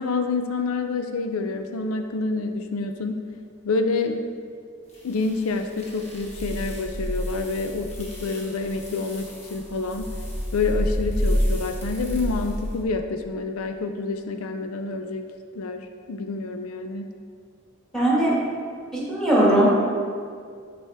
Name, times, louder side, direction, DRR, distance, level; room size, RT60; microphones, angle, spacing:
voice 1, 0.0-3.3 3.6-4.3 5.0-10.2 10.5-15.2 15.5-17.1, left 3 dB, 85° left, 6 dB, 0.5 m, -28 dB
sound 1, 4.9-12.8, equal, 30° left, 1.3 m, -29 dB
voice 2, 17.9-18.3 18.9-19.7, right 1 dB, ahead, -7 dB, 1.7 m, -19 dB
11.5 x 4.2 x 3.5 m, 2.2 s
head